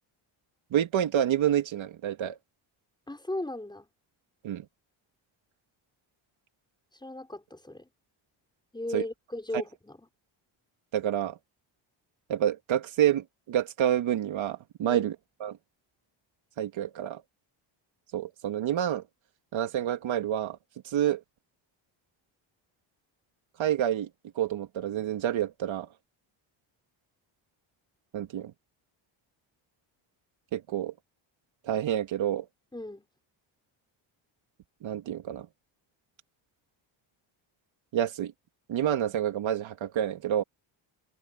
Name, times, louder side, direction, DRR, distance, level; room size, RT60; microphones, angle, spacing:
voice 1, 0.7-2.4 4.4-4.6 8.9-9.0 10.9-11.4 12.3-15.1 15.4-15.6 16.6-17.2 18.1-19.0 19.5-20.6 20.8-21.2 23.6-24.1 24.4-25.9 28.1-28.5 30.5-30.9 31.6-32.4 34.8-35.5 37.9-38.3 38.7-40.4, right 11 dB, 70° right, 2.6 m, -28 dB
voice 2, 3.1-3.9 6.9-7.9 8.7-10.1 14.8-15.1 32.7-33.1, left 1 dB, 10° left, 6.0 m, -37 dB
cardioid pair, 110°, 48 cm